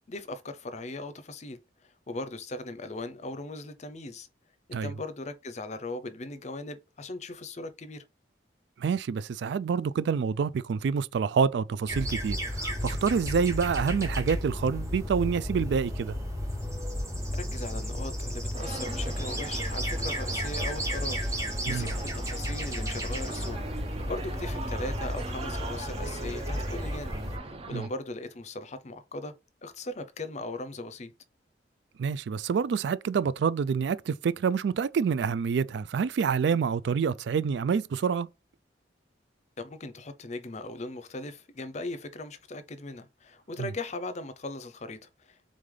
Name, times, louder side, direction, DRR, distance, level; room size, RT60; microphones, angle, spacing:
voice 1, 0.1-4.3 4.7-8.0 17.4-23.6 24.1-29.3 29.6-31.1 39.6-45.4, left 2 dB, 40° left, 0.6 m, -39 dB
voice 2, 8.8-16.2 21.7-21.9 27.7-27.8 32.0-38.3 43.6-43.7, right 6 dB, 65° right, 0.3 m, -27 dB
sound 1, 11.9-27.4, equal, 15° right, 1.3 m, -33 dB
sound 2, 18.5-27.9, right 3 dB, 30° right, 0.6 m, -40 dB
3.7 x 3.3 x 3.7 m
head